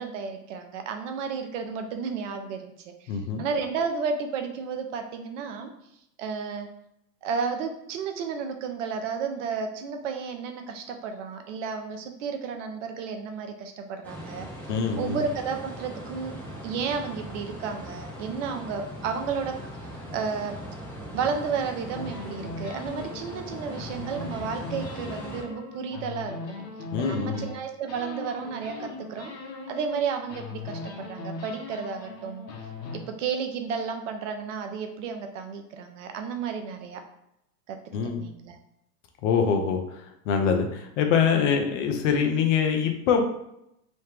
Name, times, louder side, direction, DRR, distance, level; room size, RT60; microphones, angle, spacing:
voice 1, 0.0-2.9 3.4-5.7 6.2-6.7 7.2-14.5 15.0-16.3 16.6-19.6 20.1-20.6 21.1-26.4 27.0-29.3 29.7-32.4 33.1-37.0 37.7-37.8 38.0-38.6 41.3-41.5, right 5 dB, 50° right, 6 dB, 0.6 m, -32 dB
voice 2, 3.1-3.4 14.7-15.2 26.9-27.5 37.9-38.3 39.2-43.2, left 6 dB, 50° left, 5 dB, 0.8 m, -24 dB
sound 1, 14.0-25.4, equal, 5° left, 0.9 m, -40 dB
sound 2, 21.9-27.6 27.9-30.0 30.3-33.0, left 4 dB, 85° left, 1.1 m, -39 dB
3.1 x 2.9 x 3.2 m, 0.80 s
hypercardioid pair, 110°, 48 cm